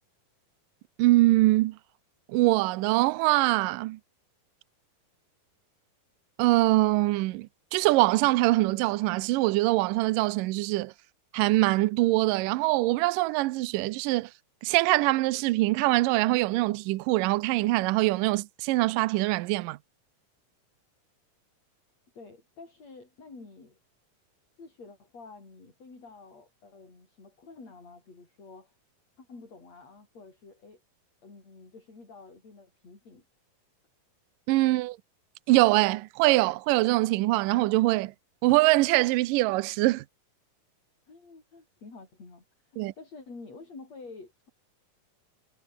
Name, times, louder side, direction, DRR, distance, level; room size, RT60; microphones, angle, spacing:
voice 1, 1.0-1.8 2.3-4.0 6.4-10.9 11.3-14.3 14.6-19.8 34.5-35.0 35.5-38.1 38.4-40.0 42.8-42.9, right 19 dB, 80° right, 2.3 m, -23 dB
voice 2, 22.1-23.8 24.6-28.8 29.2-30.8 31.2-33.2 41.1-44.5, left 3 dB, 45° left, 8.3 m, -49 dB
omnidirectional pair, 4.1 m